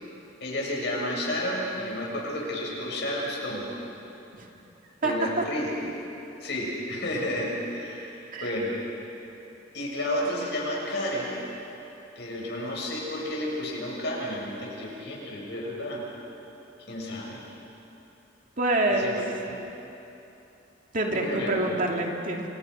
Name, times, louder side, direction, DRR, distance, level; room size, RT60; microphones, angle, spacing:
voice 1, 0.4-3.7 5.0-5.7 6.4-8.1 8.4-8.7 9.7-11.3 12.2-16.0 16.9-17.4 18.9-19.1 19.5-19.6 21.1-21.8, left 1 dB, 60° left, -3 dB, 7.1 m, -31 dB
voice 2, 5.0-5.4 8.3-8.5 18.6-19.2 20.9-22.5, right 2 dB, 45° right, 1 dB, 2.5 m, -26 dB
29.0 x 27.5 x 5.6 m, 3.0 s
head